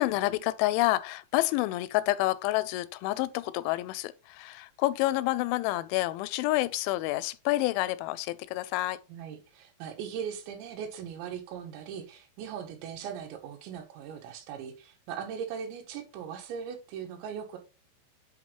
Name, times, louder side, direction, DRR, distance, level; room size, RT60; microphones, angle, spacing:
voice 1, 0.0-9.0, left 17 dB, 90° left, 3.0 m, -28 dB
voice 2, 9.1-17.6, right 8 dB, 80° right, 3.4 m, -39 dB
10.0 x 4.3 x 3.1 m
omnidirectional pair, 5.3 m